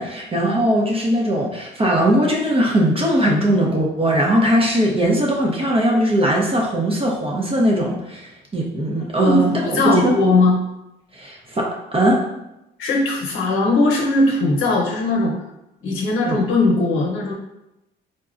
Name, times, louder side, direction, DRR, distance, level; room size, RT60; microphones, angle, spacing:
voice 1, 0.0-10.1 11.1-12.2 16.2-16.4, right 1 dB, 30° right, -2 dB, 0.6 m, -19 dB
voice 2, 9.2-10.6 12.8-15.3 15.8-17.3, left 2 dB, 85° left, -1 dB, 0.8 m, -18 dB
3.9 x 2.2 x 2.4 m, 0.90 s
cardioid pair, 90°, 20 cm